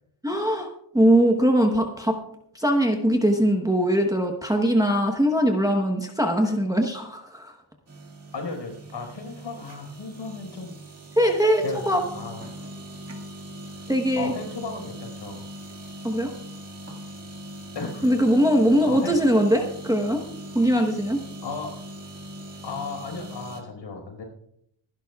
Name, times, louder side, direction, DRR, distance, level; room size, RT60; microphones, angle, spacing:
voice 1, 0.2-2.2 2.5-7.5 11.2-12.0 13.9-14.3 16.0-16.3 18.0-20.2 20.5-21.2, equal, 5° right, 2 dB, 1.0 m, -21 dB
sound 1, 7.9-23.6, equal, 30° right, 2.0 m, -41 dB
voice 2, 8.3-10.8 11.6-12.6 14.1-15.4 17.7-18.2 18.8-19.2 21.4-21.8 22.6-24.2, left 4 dB, 65° left, 2 dB, 4.8 m, -35 dB
26.0 x 11.0 x 2.3 m, 0.73 s
wide cardioid pair, 165°, 48 cm